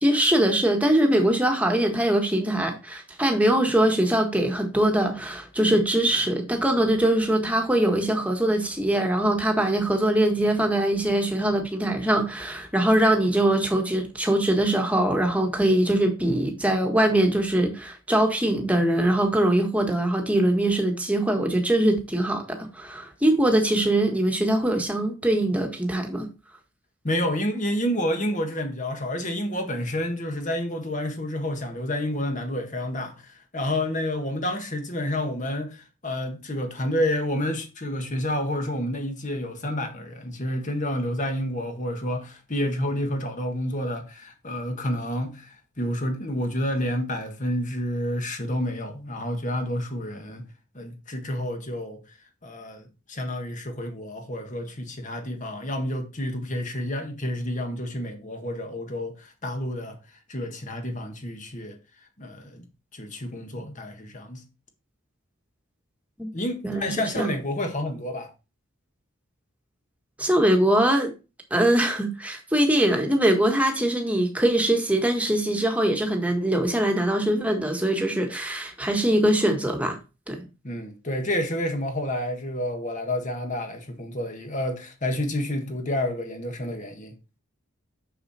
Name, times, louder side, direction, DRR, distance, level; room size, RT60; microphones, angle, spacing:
voice 1, 0.0-26.3 66.2-66.3 66.6-67.3 70.2-71.1 71.5-80.0 80.3-80.4, right 1 dB, 5° right, 1.6 m, -22 dB
voice 2, 27.0-50.4 50.7-52.0 52.4-60.0 60.3-61.8 62.2-62.6 62.9-64.4 66.3-68.3 80.6-87.1, left 1 dB, 35° left, 1.7 m, -29 dB
6.7 x 6.6 x 4.3 m
head